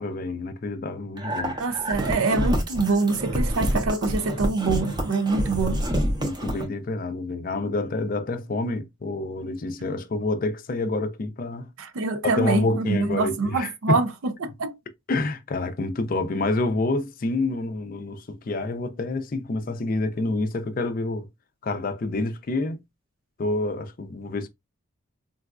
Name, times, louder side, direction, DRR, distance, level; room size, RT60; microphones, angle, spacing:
voice 1, 0.0-1.6 5.9-11.7 12.3-14.0 15.1-21.3 21.6-22.8 23.4-24.5, left 2 dB, 40° left, 0.4 m, -28 dB
sound 1, 1.2-6.7, equal, 20° right, 0.5 m, -27 dB
voice 2, 1.6-5.8 11.8-14.8, right 3 dB, 80° right, 0.5 m, -25 dB
3.8 x 2.3 x 2.3 m
head